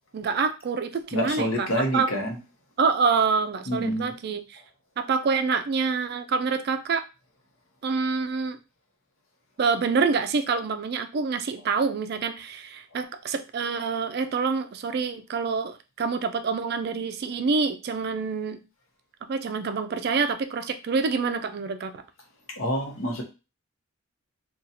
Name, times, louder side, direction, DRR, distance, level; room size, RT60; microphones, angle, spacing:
voice 1, 0.1-2.1 2.8-4.6 5.0-7.0 7.8-8.6 9.6-18.6 19.3-22.0, right 5 dB, 50° right, 0.3 m, -26 dB
voice 2, 1.1-2.4 3.7-4.1 22.6-23.2, equal, 75° left, 0.9 m, -27 dB
2.6 x 2.3 x 4.1 m
head